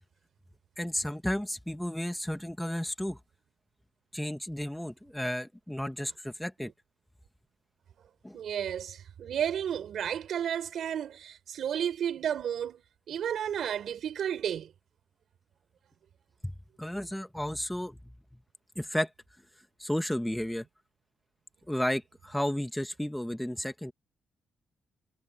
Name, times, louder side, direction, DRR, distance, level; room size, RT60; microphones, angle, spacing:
voice 1, 0.8-3.2 4.1-6.7 8.2-8.4 16.8-18.0 18.7-19.1 19.8-20.6 21.7-23.9, left 1 dB, 5° left, 1.8 m, -33 dB
voice 2, 8.3-12.8 13.1-14.7, right 9 dB, 75° right, 4.0 m, -32 dB
cardioid pair, 80°, 0 cm